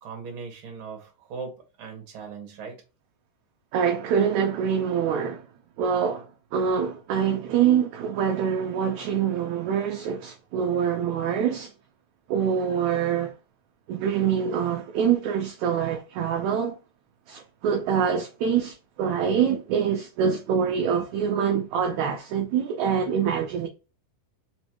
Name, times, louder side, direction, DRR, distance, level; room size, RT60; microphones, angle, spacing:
voice 1, 0.0-2.8, right 5 dB, 45° right, 1.9 m, -39 dB
voice 2, 3.7-5.4 5.8-6.3 6.5-11.7 12.3-13.3 13.9-16.8 17.3-23.7, right 7 dB, 75° right, 1.7 m, -25 dB
5.2 x 3.2 x 3.0 m
omnidirectional pair, 3.9 m